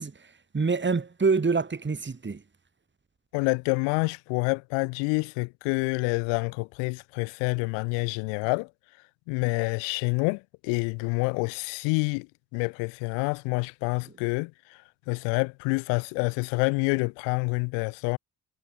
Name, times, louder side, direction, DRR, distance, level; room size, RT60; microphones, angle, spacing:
voice 1, 0.0-2.4, right 4 dB, 25° right, 2.9 m, -26 dB
voice 2, 3.3-8.7 9.3-12.3 12.5-14.8 15.1-18.2, left 33 dB, 70° left, 1.2 m, -27 dB
figure-of-eight pair, 45°, 45 cm